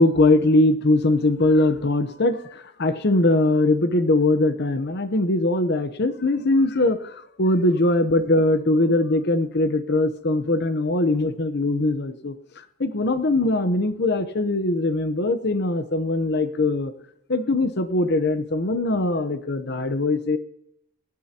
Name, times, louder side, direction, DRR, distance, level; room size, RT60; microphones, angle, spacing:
voice 1, 0.0-12.3 12.8-16.9 17.3-20.4, left 2 dB, 50° left, 11 dB, 0.9 m, -21 dB
24.0 x 9.4 x 2.9 m, 0.79 s
head